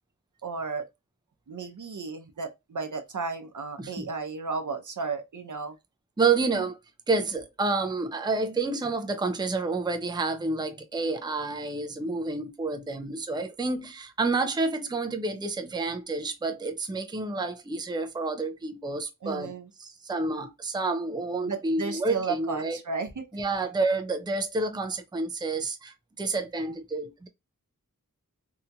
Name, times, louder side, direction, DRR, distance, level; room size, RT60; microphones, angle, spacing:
voice 1, 0.4-0.9 1.5-5.8 19.2-19.7 21.4-23.3, right 4 dB, 65° right, 0.6 m, -34 dB
voice 2, 6.2-6.8 7.1-19.5 19.8-22.8 23.3-27.3, right 3 dB, 15° right, 0.5 m, -29 dB
2.8 x 2.6 x 2.2 m
wide cardioid pair, 40°, 33 cm